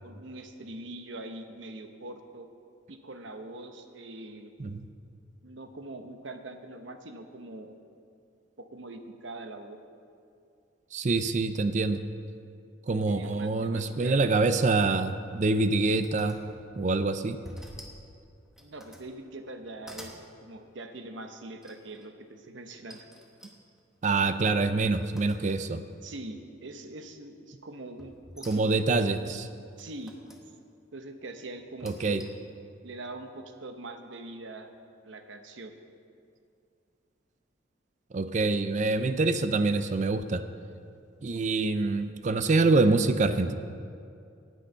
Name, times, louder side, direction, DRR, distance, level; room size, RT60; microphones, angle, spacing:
voice 1, 0.0-2.5 2.9-4.5 5.4-7.8 8.6-9.8 13.1-14.2 18.6-23.1 26.0-29.1 29.8-30.1 30.9-32.3 32.8-34.7 35.0-35.7, right 2 dB, 75° right, 6 dB, 1.0 m, -43 dB
voice 2, 10.9-12.0 12.9-16.4 16.8-17.4 24.0-25.8 28.5-29.5 31.8-32.2 38.1-40.4 41.2-43.5, right 3 dB, 40° right, 10 dB, 0.4 m, -25 dB
sound 1, 15.2-16.9 17.4-18.1 18.5-19.1 19.6-20.2 21.6-22.1 22.9-25.8 26.2-26.7 28.0-29.0 29.8-30.5 31.6-32.5, equal, ahead, 1.0 m, -49 dB
18.5 x 6.4 x 5.6 m, 2.4 s
head